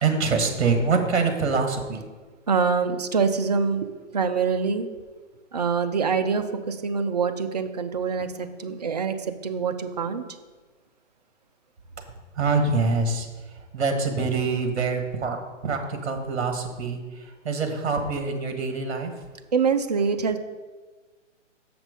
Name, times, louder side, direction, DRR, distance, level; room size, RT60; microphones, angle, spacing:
voice 1, 0.0-2.0 12.3-15.4 15.6-19.1, right 4 dB, 60° right, 5 dB, 1.6 m, -25 dB
voice 2, 2.5-4.9 5.5-10.2 19.5-20.4, right 5 dB, 35° right, 8 dB, 0.4 m, -25 dB
7.2 x 5.9 x 5.2 m, 1.3 s
hypercardioid pair, 155°, 38 cm